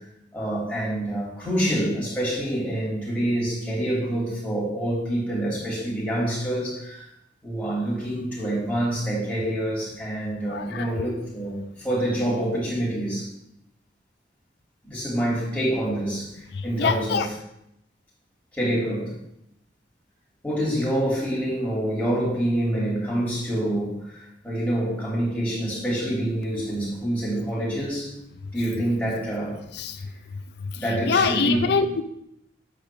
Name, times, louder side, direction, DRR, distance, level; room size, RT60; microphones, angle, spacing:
voice 1, 0.3-7.1 7.4-13.3 14.8-17.2 18.5-19.1 20.4-28.1 28.5-29.6 30.7-31.6, right 1 dB, 10° left, -7 dB, 3.5 m, -26 dB
voice 2, 10.5-11.1 16.8-17.3 29.7-30.0 31.1-32.0, left 5 dB, 60° left, 9 dB, 0.4 m, -24 dB
8.1 x 5.1 x 6.3 m, 0.81 s
head